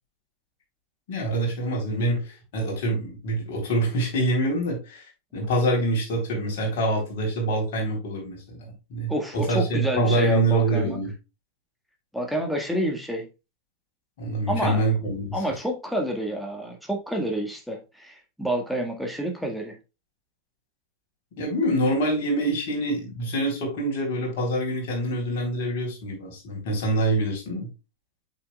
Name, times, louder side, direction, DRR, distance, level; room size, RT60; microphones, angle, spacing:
voice 1, 1.1-8.6 8.9-11.1 14.2-15.6 21.4-27.7, right 1 dB, 50° left, -1 dB, 3.9 m, -25 dB
voice 2, 9.1-11.0 12.1-13.3 14.5-15.0 15.3-19.7, equal, ahead, 2 dB, 1.8 m, -28 dB
8.0 x 6.1 x 2.4 m, 0.28 s
figure-of-eight pair, 90°, 0 cm